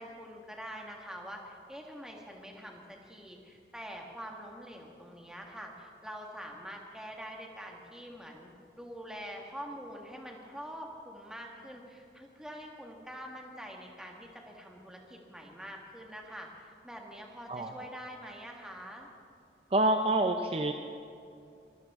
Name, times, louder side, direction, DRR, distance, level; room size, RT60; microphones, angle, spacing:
voice 1, 0.0-19.1, equal, 5° right, 0 dB, 1.6 m, -45 dB
voice 2, 17.5-17.9 19.7-20.7, right 1 dB, 35° right, 5 dB, 0.6 m, -27 dB
22.5 x 14.0 x 3.7 m, 2.5 s
head